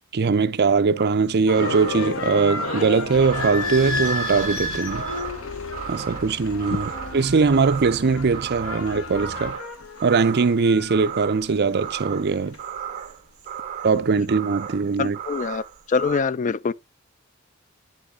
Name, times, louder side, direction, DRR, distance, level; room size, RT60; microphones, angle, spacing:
voice 1, 0.1-5.0 5.9-9.6 10.0-12.6 13.8-15.2, right 4 dB, 50° right, 0.6 m, -21 dB
sound 1, 1.0-16.2, right 9 dB, 35° right, 1.4 m, -36 dB
sound 2, 1.5-12.6, left 4 dB, 70° left, 1.1 m, -34 dB
Idling / Squeak, 3.1-9.5, left 2 dB, 90° left, 1.7 m, -33 dB
voice 2, 15.0-15.6 15.9-16.7, left 5 dB, 35° left, 0.4 m, -24 dB
10.0 x 5.6 x 3.7 m
head